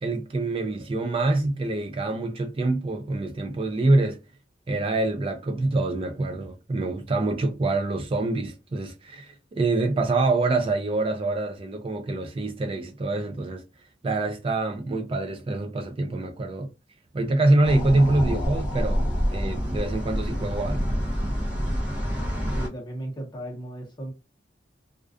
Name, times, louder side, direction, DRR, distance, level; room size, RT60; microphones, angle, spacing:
voice 1, 0.0-4.2 4.7-13.6 14.0-16.7 17.1-20.8, right 2 dB, 30° right, 0.3 m, -25 dB
sound 1, 17.6-22.7, equal, 10° right, 1.1 m, -27 dB
voice 2, 22.5-24.1, right 1 dB, 25° left, 0.8 m, -35 dB
2.4 x 2.3 x 2.4 m
head